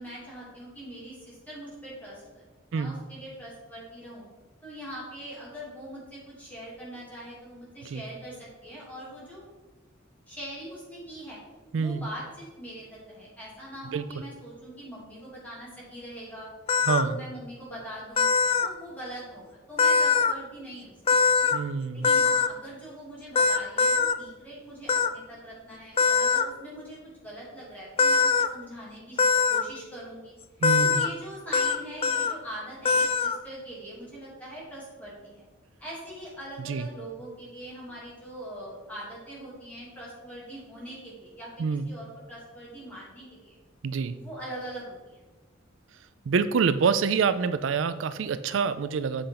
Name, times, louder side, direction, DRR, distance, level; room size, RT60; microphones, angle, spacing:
voice 1, 0.0-4.3 4.6-9.4 10.3-11.4 11.7-16.5 17.0-18.3 18.6-21.3 21.9-29.2 29.5-30.3 30.8-35.4 35.8-43.6 44.1-45.2, right 1 dB, 10° left, -7 dB, 2.7 m, -42 dB
voice 2, 11.7-12.1 13.9-14.3 16.8-17.2 21.5-22.1 30.6-31.0 36.6-36.9 41.6-41.9 43.8-44.1 46.3-49.3, right 5 dB, 75° right, 12 dB, 0.4 m, -26 dB
sound 1, 16.7-17.0 18.2-18.7 19.8-20.3 21.1-21.6 22.0-22.5 23.4-24.1 24.9-25.1 26.0-26.4 28.0-28.5 29.2-29.6 30.6-31.1 31.5-31.8 32.0-32.3 32.9-33.4, left 5 dB, 30° left, 0.3 m, -22 dB
8.0 x 5.0 x 5.7 m, 1.2 s
head